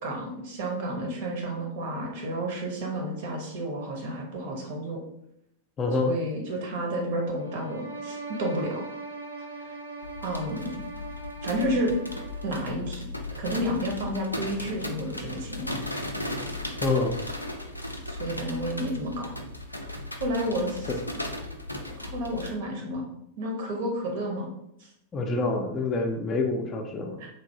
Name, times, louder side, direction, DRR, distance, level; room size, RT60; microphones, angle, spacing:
voice 1, 0.0-5.0 6.0-8.8 9.6-9.7 10.2-10.8 11.4-12.0 12.4-13.0 13.4-15.9 18.1-19.3 20.2-20.9 22.0-23.1 23.4-24.5 24.8-24.9 27.2-27.3, right 1 dB, 55° right, 1 dB, 0.9 m, -31 dB
voice 2, 5.8-6.1 16.8-17.1 20.9-21.0 25.1-27.2, left 3 dB, 25° left, 3 dB, 0.4 m, -26 dB
sound 1, 7.4-12.8, right 3 dB, 90° right, 0.5 m, -40 dB
sound 2, 10.0-22.5, left 1 dB, 85° left, 0.3 m, -36 dB
3.3 x 2.6 x 2.7 m, 0.77 s
figure-of-eight pair, 90°, 0 cm